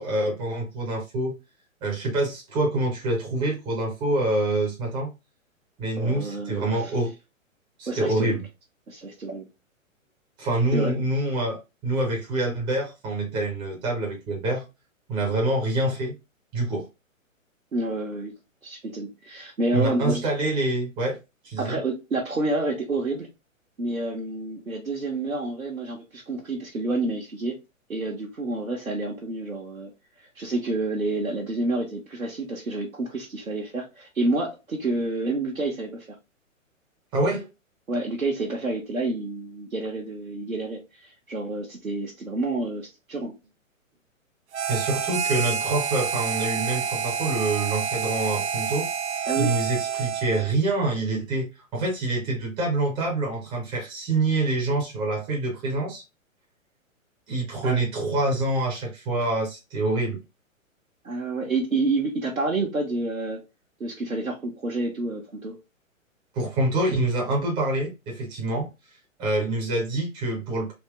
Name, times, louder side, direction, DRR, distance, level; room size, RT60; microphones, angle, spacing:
voice 1, 0.0-1.4 1.8-5.1 5.8-7.1 7.8-8.4 10.4-14.7 15.1-16.2 16.5-16.9 19.7-21.2 21.4-21.8 37.1-37.5 44.7-48.9 49.4-56.0 57.3-60.2 66.3-68.7 69.2-70.7, right 2 dB, 10° right, 0.6 m, -26 dB
voice 2, 6.0-6.9 7.9-8.4 8.9-9.5 10.7-11.0 17.7-18.3 18.6-20.3 21.6-23.3 23.8-27.6 27.9-29.9 30.2-36.2 37.9-43.4 49.3-49.6 57.6-57.8 61.0-63.4 63.8-65.6, right 2 dB, 85° right, 1.0 m, -29 dB
Harmonica, 44.5-50.5, right 7 dB, 55° right, 0.5 m, -28 dB
3.6 x 2.8 x 3.3 m
figure-of-eight pair, 120°, 41 cm